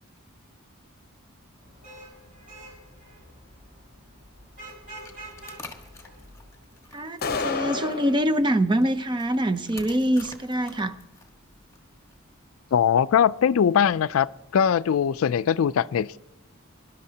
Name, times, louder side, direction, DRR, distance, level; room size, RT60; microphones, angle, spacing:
Vehicle horn car horn honking / Traffic noise roadway noise, 1.6-6.9, right 1 dB, 40° right, 5.1 m, -47 dB
sound 1, 4.5-12.3, left 3 dB, 15° left, 1.4 m, -49 dB
voice 1, 6.9-10.9, right 1 dB, 20° right, 0.6 m, -24 dB
sound 2, 7.2-8.2, left 4 dB, 45° left, 0.7 m, -29 dB
voice 2, 12.7-14.3 14.5-16.2, left 8 dB, 70° left, 0.4 m, -21 dB
23.0 x 11.5 x 2.8 m
head